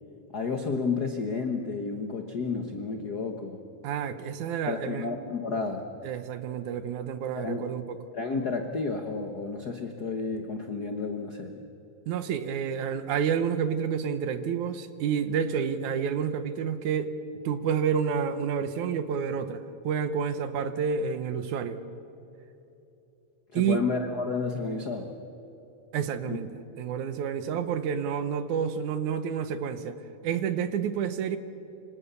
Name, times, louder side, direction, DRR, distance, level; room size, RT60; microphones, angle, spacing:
voice 1, 0.3-3.6 4.7-5.9 7.3-7.7 8.1-11.6 23.5-25.2 26.3-26.4, left 4 dB, 90° left, 5 dB, 0.8 m, -31 dB
voice 2, 3.8-5.1 6.0-8.0 12.1-17.2 17.4-21.8 23.5-23.8 25.9-26.5 26.8-31.4, right 7 dB, 70° right, 11 dB, 2.2 m, -29 dB
26.5 x 25.0 x 6.9 m, 2.9 s
omnidirectional pair, 3.9 m